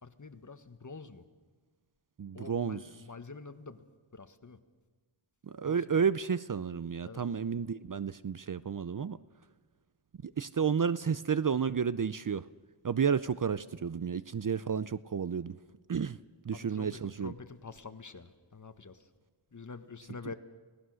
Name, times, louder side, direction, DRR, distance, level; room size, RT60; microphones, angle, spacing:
voice 1, 0.0-1.2 2.3-3.8 4.1-4.6 5.6-5.9 7.0-7.3 16.5-19.1 19.5-20.3, left 4 dB, 35° left, 10 dB, 1.5 m, -47 dB
voice 2, 2.2-2.8 5.4-9.2 10.2-12.4 12.8-15.6 15.9-16.2 16.4-17.3, right 6 dB, 40° right, 16 dB, 0.6 m, -31 dB
29.0 x 18.0 x 6.4 m, 1.4 s
wide cardioid pair, 65°, 49 cm